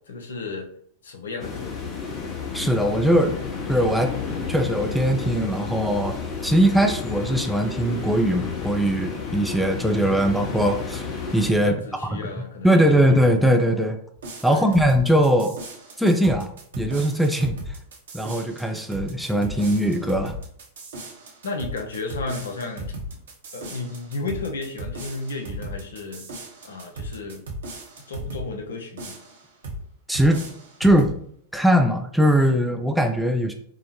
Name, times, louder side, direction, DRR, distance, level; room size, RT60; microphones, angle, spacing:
voice 1, 0.1-0.7 1.0-2.0 11.6-13.1 14.5-14.8 21.4-22.9 23.5-26.3 26.6-27.4 28.1-29.2, left 3 dB, 65° left, 4 dB, 0.5 m, -33 dB
sound 1, 1.4-11.5, left 5 dB, 30° left, 0.8 m, -31 dB
voice 2, 2.5-3.4 3.7-11.0 11.3-11.8 12.1-12.3 12.6-14.0 14.4-15.6 16.0-16.5 16.8-17.8 18.1-20.4 30.1-30.4 30.8-31.2 31.5-33.5, equal, ahead, 3 dB, 0.4 m, -20 dB
sound 2, 14.2-28.5 29.0-29.8 30.1-31.2, right 1 dB, 65° right, 0.8 m, -36 dB
4.5 x 2.0 x 2.9 m, 0.63 s
figure-of-eight pair, 90°, 0 cm